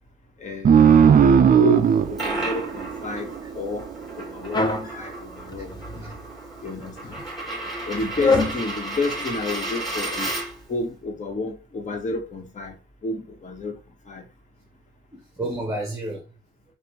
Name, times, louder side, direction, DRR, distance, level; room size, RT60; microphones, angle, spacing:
voice 1, 0.4-0.9 1.3-3.3 3.5-3.9 4.2-5.8 6.6-7.2 7.8-10.4 10.7-13.7 14.1-14.2, left 3 dB, 40° left, 1.4 m, -31 dB
sound 1, 0.6-3.8, right 7 dB, 45° right, 0.5 m, -17 dB
Coin (dropping), 1.8-10.7, right 2 dB, ahead, 2.8 m, -33 dB
sound 2, 4.5-4.9 5.5-6.2 6.9-7.2 8.1-8.6, left 3 dB, 20° left, 1.0 m, -24 dB
voice 2, 4.8-5.1 5.6-5.7 6.0-6.1 6.6-6.7 7.2-7.4 8.0-8.1 8.3-8.5 15.1-16.3, right 1 dB, 15° right, 1.3 m, -33 dB
5.9 x 2.5 x 3.3 m
cardioid pair, 90°, 20 cm